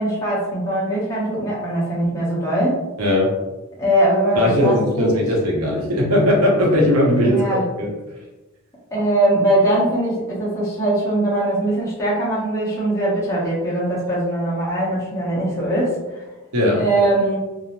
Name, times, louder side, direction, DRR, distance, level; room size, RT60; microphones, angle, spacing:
voice 1, 0.0-2.9 3.8-5.2 7.2-7.7 8.9-16.2 16.8-17.4, right 1 dB, 15° left, -8 dB, 0.9 m, -21 dB
voice 2, 3.0-3.3 4.3-7.9 16.5-16.8, left 1 dB, 80° right, -2 dB, 0.8 m, -18 dB
2.6 x 2.0 x 2.9 m, 1.1 s
head